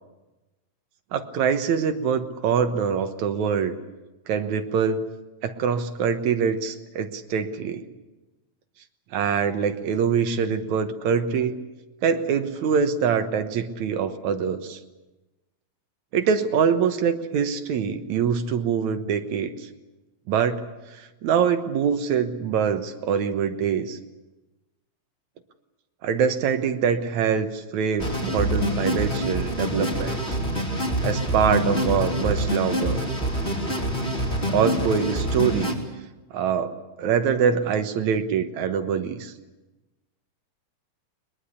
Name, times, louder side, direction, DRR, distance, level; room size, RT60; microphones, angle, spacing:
voice 1, 1.1-3.8 4.3-5.1 5.4-7.8 9.1-11.6 12.0-14.8 16.1-19.7 20.3-20.6 20.9-24.0 26.0-30.4 31.0-33.0 34.5-35.8 36.3-39.3, right 7 dB, 80° right, 8 dB, 2.6 m, -24 dB
sound 1, 28.0-35.7, equal, 20° left, 3.2 m, -26 dB
22.0 x 21.5 x 8.4 m, 1.1 s
omnidirectional pair, 3.3 m